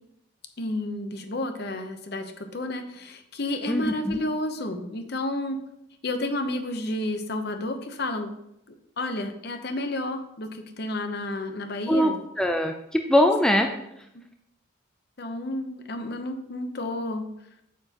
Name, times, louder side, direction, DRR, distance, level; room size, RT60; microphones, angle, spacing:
voice 1, 0.6-5.6 6.0-8.3 8.7-12.2 15.2-17.3, left 1 dB, 50° left, 7 dB, 0.8 m, -31 dB
voice 2, 3.7-4.2 11.9-12.1 12.4-13.7, equal, 5° left, 4 dB, 0.4 m, -22 dB
8.3 x 6.9 x 2.9 m, 0.79 s
head